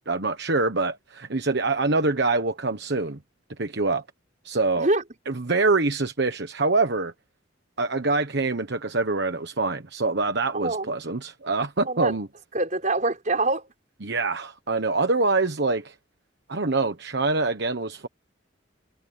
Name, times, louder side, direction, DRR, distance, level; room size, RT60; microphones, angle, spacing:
voice 1, 0.0-3.2 3.6-4.0 4.4-4.9 5.3-7.1 7.8-12.3 14.0-15.9 16.5-18.1, right 3 dB, 60° right, 1.3 m, -25 dB
voice 2, 10.5-10.9 11.8-12.2 12.5-13.7, right 2 dB, 40° right, 5.3 m, -25 dB
head